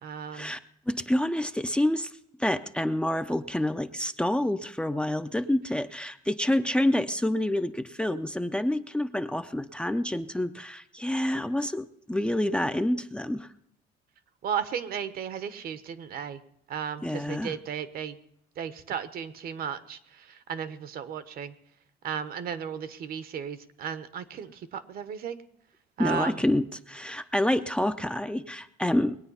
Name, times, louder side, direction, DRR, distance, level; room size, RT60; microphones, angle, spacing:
voice 1, 0.0-0.5 14.4-16.4 16.7-18.2 18.6-21.5 22.0-25.4 26.0-26.4, right 7 dB, 60° right, 12 dB, 1.1 m, -35 dB
voice 2, 0.9-2.1 2.4-13.5 17.0-17.6 26.0-29.2, left 1 dB, 5° left, 9 dB, 0.6 m, -28 dB
20.5 x 8.9 x 5.6 m, 0.75 s
cardioid pair, 110°, 17 cm